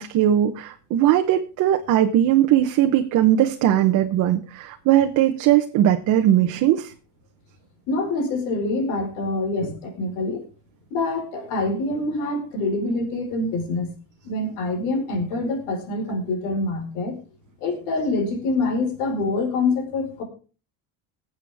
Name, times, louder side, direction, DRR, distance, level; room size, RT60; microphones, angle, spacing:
voice 1, 0.0-6.9, right 11 dB, 50° right, 5 dB, 1.0 m, -19 dB
voice 2, 7.9-10.4 10.9-13.9 14.2-17.2 17.6-20.2, left 2 dB, 90° left, 3 dB, 4.8 m, -25 dB
22.0 x 8.1 x 3.5 m, 0.35 s
cardioid pair, 175°, 40 cm